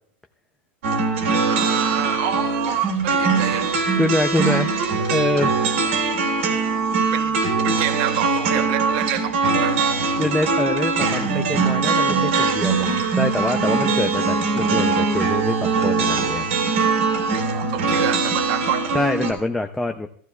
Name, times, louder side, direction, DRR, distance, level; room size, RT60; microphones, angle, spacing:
sound 1, 0.8-19.3, right 4 dB, 85° right, 2.8 m, -21 dB
voice 1, 1.4-3.7 4.4-4.6 7.1-7.3 7.6-9.8 17.2-18.9, right 11 dB, 45° right, 7 dB, 0.8 m, -27 dB
voice 2, 4.0-4.8 5.1-5.5 10.1-16.5 18.9-20.1, left 2 dB, 5° left, 4 dB, 0.3 m, -25 dB
15.0 x 14.5 x 2.2 m, 0.65 s
supercardioid pair, 170°, 7 cm